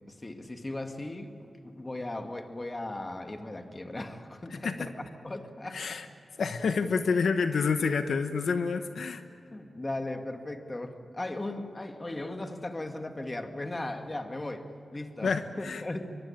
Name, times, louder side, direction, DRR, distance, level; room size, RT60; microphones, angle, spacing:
voice 1, 0.1-6.0 9.5-16.1, left 2 dB, 25° left, 5 dB, 2.1 m, -37 dB
voice 2, 5.7-6.1 6.4-9.2 15.2-15.8, left 5 dB, 80° left, 8 dB, 1.1 m, -28 dB
23.5 x 23.5 x 8.9 m, 2.7 s
wide cardioid pair, 80°, 0 cm